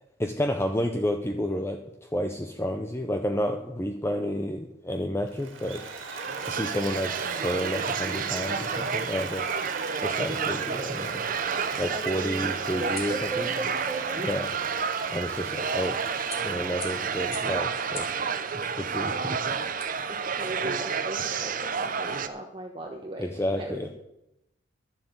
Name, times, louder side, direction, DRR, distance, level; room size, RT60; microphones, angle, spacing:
voice 1, 0.2-5.8 6.4-9.5 10.0-11.2 11.8-13.5 14.2-14.5 15.1-16.0 16.4-18.2 18.5-19.4 23.2-23.9, equal, 10° left, 6 dB, 0.6 m, -30 dB
Applause, 5.3-18.5, right 5 dB, 80° right, 2.0 m, -40 dB
sound 1, 5.8-22.3, right 6 dB, 45° right, 0.7 m, -30 dB
sound 2, 10.7-20.6, left 3 dB, 30° left, 2.5 m, -48 dB
voice 2, 11.9-14.3 15.6-15.7 20.3-23.9, right 2 dB, 25° right, 1 dB, 1.1 m, -37 dB
12.0 x 7.6 x 8.2 m, 0.87 s
head